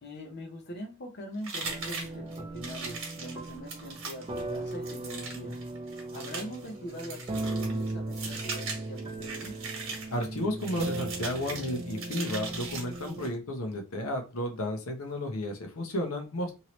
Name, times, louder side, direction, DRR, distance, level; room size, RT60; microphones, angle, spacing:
voice 1, 0.0-5.6 6.1-9.6, equal, 50° left, 3 dB, 0.6 m, -42 dB
sound 1, 1.4-13.3, right 4 dB, 65° right, 1.2 m, -40 dB
sound 2, 1.6-13.3, right 2 dB, 25° right, 0.4 m, -37 dB
voice 2, 10.1-16.5, left 1 dB, 85° left, 4 dB, 0.8 m, -33 dB
2.9 x 2.7 x 3.0 m, 0.30 s
head